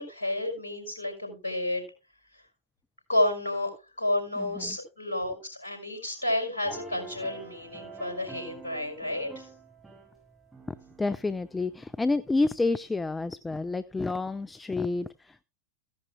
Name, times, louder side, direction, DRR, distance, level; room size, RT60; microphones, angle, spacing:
voice 1, 0.0-1.9 3.1-9.5, left 1 dB, 70° left, 5.2 m, -30 dB
voice 2, 4.4-4.8 11.0-15.4, left 3 dB, 10° left, 0.4 m, -29 dB
sound 1, 6.6-12.1, right 4 dB, 10° right, 5.8 m, -47 dB
15.5 x 10.5 x 2.2 m
figure-of-eight pair, 90°, 0 cm